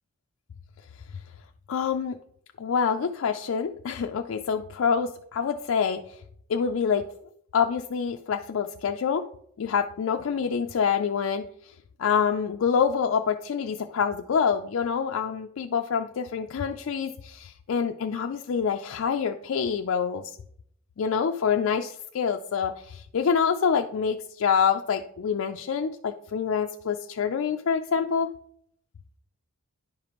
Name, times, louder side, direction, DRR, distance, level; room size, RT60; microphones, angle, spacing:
voice 1, 1.7-2.2 2.6-6.0 6.5-7.0 7.5-9.2 9.6-11.4 12.0-20.4 21.0-28.3, left 6 dB, 70° left, 5 dB, 0.4 m, -26 dB
10.5 x 5.0 x 3.0 m, 0.68 s
head